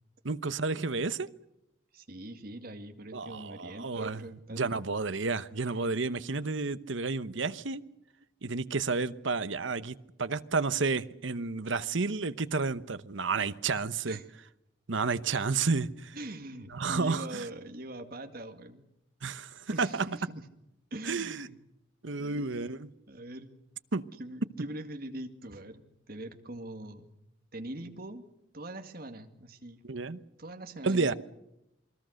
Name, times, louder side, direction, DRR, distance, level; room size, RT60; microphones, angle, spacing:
voice 1, 0.2-1.3 3.1-4.2 4.5-7.8 8.4-14.2 14.9-16.2 16.7-17.4 19.2-20.1 21.1-21.5 22.0-22.9 23.9-24.1 29.8-30.2 30.8-31.1, right 4 dB, 70° right, 0.9 m, -31 dB
voice 2, 1.9-4.9 14.0-14.3 16.1-18.9 19.7-20.5 20.9-21.6 22.2-22.7 23.1-23.5 24.2-27.2 27.5-28.2 28.5-29.8 30.4-31.2, right 1 dB, 50° right, 2.1 m, -42 dB
28.0 x 21.0 x 6.5 m
head